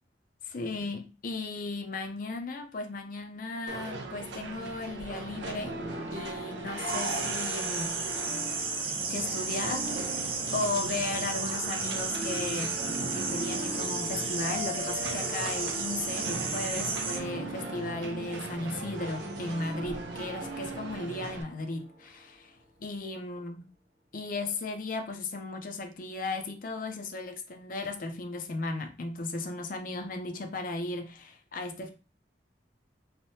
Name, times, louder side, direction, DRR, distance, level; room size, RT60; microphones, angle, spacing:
voice 1, 0.4-5.8 6.1-8.0 9.1-10.0 10.5-22.5 22.8-23.7 24.1-31.9, left 3 dB, 50° left, 4 dB, 0.5 m, -36 dB
sound 1, 3.7-21.4, right 3 dB, 80° right, 0.5 m, -40 dB
sound 2, 5.4-22.3, equal, 45° right, 0.8 m, -41 dB
sound 3, 6.9-17.2, right 4 dB, 30° right, 0.4 m, -33 dB
3.2 x 2.1 x 2.7 m, 0.33 s
head